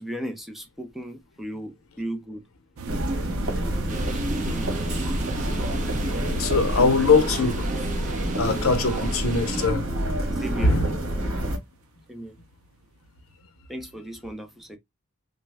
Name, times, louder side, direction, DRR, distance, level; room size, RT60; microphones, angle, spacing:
voice 1, 0.0-2.4 4.1-5.0 6.7-7.1 10.4-11.5 12.1-12.4 13.7-14.8, right 1 dB, ahead, 0.4 m, -37 dB
sound 1, 2.8-11.8 12.4-12.6 12.8-13.0, right 2 dB, 90° right, 0.5 m, -40 dB
sound 2, 2.9-11.6, right 1 dB, 65° right, 1.3 m, -28 dB
sound 3, 3.9-9.7, right 2 dB, 35° right, 0.7 m, -36 dB
voice 2, 6.3-7.6 8.4-9.9 10.6-10.9, left 4 dB, 85° left, 0.7 m, -21 dB
3.2 x 2.1 x 3.3 m
head